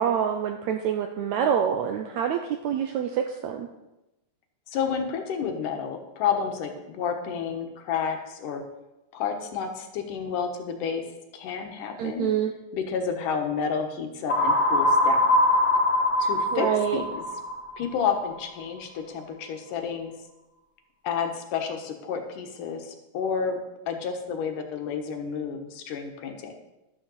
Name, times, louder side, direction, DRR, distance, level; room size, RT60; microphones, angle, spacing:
voice 1, 0.0-3.7 12.0-12.5 16.5-17.0, right 8 dB, 80° right, 6 dB, 1.7 m, -26 dB
voice 2, 4.7-8.6 9.1-11.0 11.3-12.3 12.7-15.3 16.2-16.7 16.9-17.2 17.8-20.1 21.0-23.6 23.9-26.5, left 6 dB, 75° left, 4 dB, 2.7 m, -30 dB
sound 1, 14.3-18.2, left 1 dB, 20° left, 1.5 m, -23 dB
12.0 x 6.5 x 7.0 m, 0.96 s
omnidirectional pair, 3.9 m